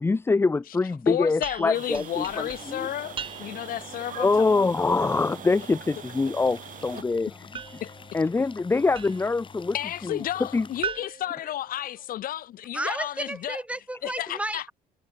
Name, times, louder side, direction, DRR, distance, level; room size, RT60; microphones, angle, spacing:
voice 1, 0.0-2.9 3.4-3.5 4.2-7.3 8.1-9.8 10.0-10.2 10.5-10.7, left 3 dB, 15° left, 0.5 m, -24 dB
voice 2, 1.1-4.7 7.8-7.9 9.7-13.6 14.0-14.6, left 12 dB, 55° left, 0.8 m, -32 dB
sound 1, 1.4-3.8 7.5-9.4 10.8-12.3, right 7 dB, 30° right, 0.7 m, -39 dB
sound 2, 1.7-7.0, right 10 dB, 50° right, 1.5 m, -43 dB
sound 3, 2.1-10.9, left 5 dB, 30° left, 1.9 m, -48 dB
voice 3, 7.3-7.8 12.7-14.7, right 1 dB, 5° right, 1.6 m, -33 dB
cardioid pair, 110°, 17 cm